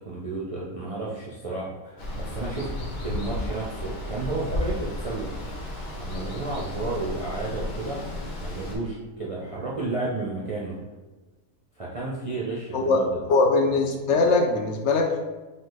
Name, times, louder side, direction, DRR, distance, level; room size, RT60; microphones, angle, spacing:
voice 1, 0.0-2.7 3.0-5.3 6.0-8.0 8.4-10.8 11.8-13.1, right 2 dB, 40° right, -5 dB, 0.5 m, -32 dB
Water, 2.0-8.8, left 1 dB, 85° left, 1.4 m, -33 dB
voice 2, 12.7-15.2, left 3 dB, 65° left, 2 dB, 0.8 m, -21 dB
5.4 x 2.5 x 3.9 m, 1.2 s
omnidirectional pair, 1.4 m